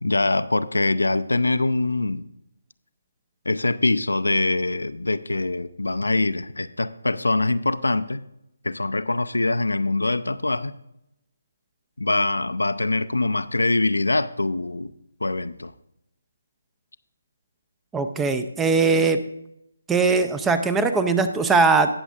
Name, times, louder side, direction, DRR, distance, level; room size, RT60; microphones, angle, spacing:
voice 1, 0.0-2.3 3.5-8.2 8.6-10.7 12.0-14.9 15.2-15.7, left 2 dB, 70° left, 12 dB, 0.5 m, -23 dB
voice 2, 17.9-19.2 19.9-22.0, right 4 dB, 5° right, 10 dB, 0.5 m, -20 dB
18.5 x 7.0 x 2.5 m, 0.83 s
figure-of-eight pair, 145°, 0 cm